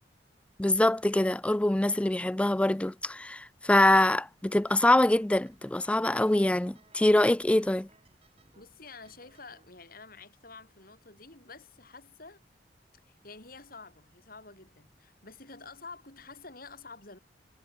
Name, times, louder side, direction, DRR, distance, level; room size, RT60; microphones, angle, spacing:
voice 1, 0.6-7.9, left 1 dB, 5° left, 0.3 m, -24 dB
sound 1, 4.5-9.6, right 3 dB, 35° right, 3.9 m, -63 dB
voice 2, 8.5-12.4 13.1-17.2, left 4 dB, 55° left, 7.6 m, -49 dB
head